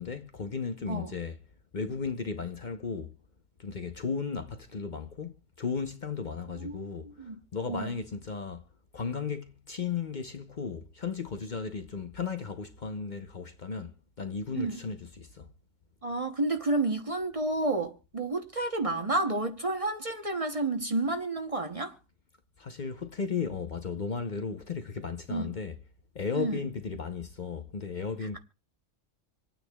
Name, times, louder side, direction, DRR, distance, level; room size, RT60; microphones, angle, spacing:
voice 1, 0.0-1.4 1.7-3.1 3.6-8.6 8.9-15.5 22.6-25.8 26.1-28.4, left 5 dB, 45° left, 0.9 m, -35 dB
voice 2, 6.6-7.4 7.7-7.9 14.6-14.8 16.0-22.0 25.3-25.5 26.3-26.6, right 2 dB, 30° right, 0.9 m, -30 dB
26.5 x 9.3 x 2.3 m
omnidirectional pair, 1.2 m